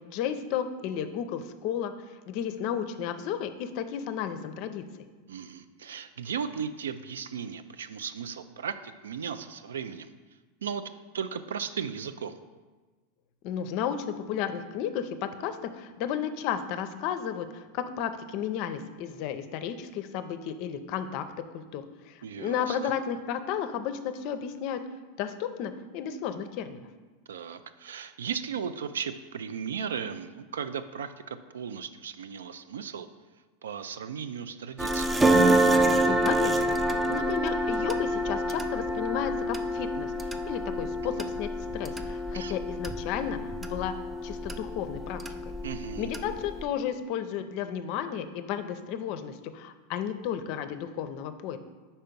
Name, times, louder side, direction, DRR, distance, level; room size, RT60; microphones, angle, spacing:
voice 1, 0.0-1.9 2.3-4.8 13.4-21.3 21.5-24.8 25.2-26.9 36.1-43.9 44.2-45.5 46.0-51.6, left 8 dB, 55° left, 10 dB, 0.5 m, -33 dB
voice 2, 5.3-10.1 10.6-10.8 11.1-12.4 22.2-22.8 27.3-33.1 33.6-35.2 42.3-42.5 45.6-46.1, right 7 dB, 90° right, 11 dB, 0.3 m, -36 dB
sound 1, 34.8-46.6, right 1 dB, 15° right, 0.4 m, -27 dB
4.5 x 4.3 x 5.2 m, 1.3 s
hypercardioid pair, 110°, 0 cm